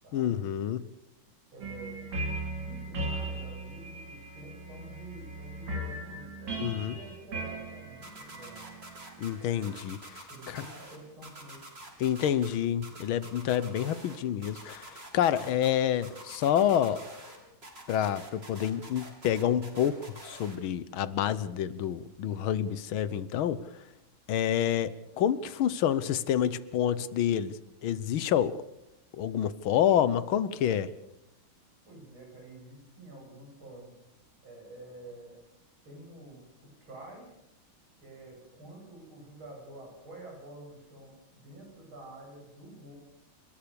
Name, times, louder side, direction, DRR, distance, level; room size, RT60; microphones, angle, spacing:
voice 1, 0.1-0.9 6.6-6.9 9.2-10.6 12.0-17.0 17.9-23.7 24.3-28.6 29.2-30.9, left 10 dB, 85° left, 17 dB, 1.8 m, -28 dB
voice 2, 1.5-8.7 10.3-11.7 31.8-33.9 34.4-35.4 35.8-37.3 38.0-42.9, right 2 dB, 85° right, -1 dB, 8.8 m, -49 dB
sound 1, 1.6-9.8, right 2 dB, 65° right, 3.7 m, -38 dB
sound 2, 8.0-9.3 9.6-11.0 11.2-12.5 12.8-14.2 14.4-15.7 16.0-17.4 17.6-20.6, right 1 dB, 30° right, 3.7 m, -47 dB
29.5 x 13.5 x 6.9 m, 0.85 s
omnidirectional pair, 2.2 m